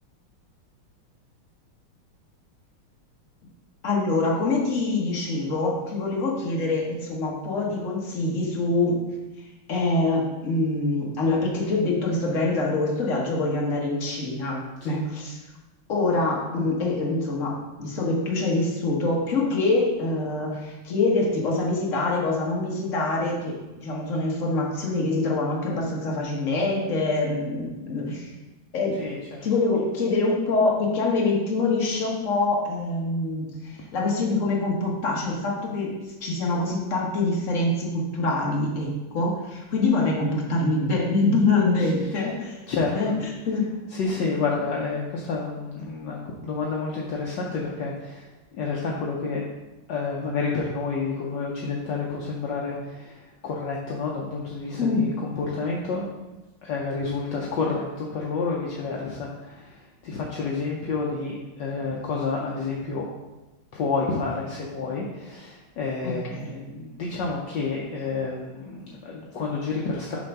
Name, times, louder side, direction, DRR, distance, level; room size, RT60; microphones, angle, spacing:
voice 1, 3.8-9.0 9.4-15.4 15.9-28.3 28.7-29.0 29.4-42.6 42.9-43.7 54.8-55.1 66.0-66.7, left 2 dB, 40° left, -2 dB, 1.5 m, -25 dB
voice 2, 29.0-29.5 41.8-41.9 42.2-42.3 42.7-43.1 43.9-49.4 49.9-56.1 56.6-63.1 63.7-70.2, left 4 dB, 65° left, -3 dB, 1.3 m, -29 dB
6.9 x 3.8 x 5.4 m, 1.1 s
omnidirectional pair, 2.3 m